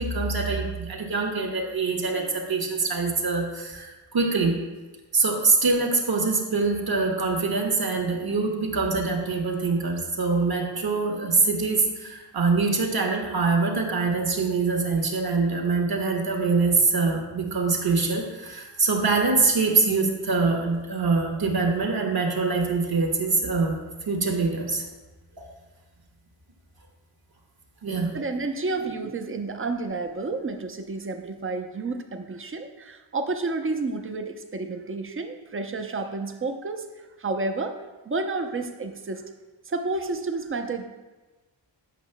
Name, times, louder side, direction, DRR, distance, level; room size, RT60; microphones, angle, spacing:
voice 1, 0.0-4.5 5.1-23.8 24.1-24.8 25.4-25.5 27.8-28.2, right 4 dB, 50° right, 1 dB, 1.2 m, -24 dB
voice 2, 27.9-37.8 38.0-39.2 39.7-40.8, right 3 dB, 25° right, 6 dB, 0.6 m, -30 dB
8.2 x 5.4 x 2.2 m, 1.2 s
cardioid pair, 45°, 48 cm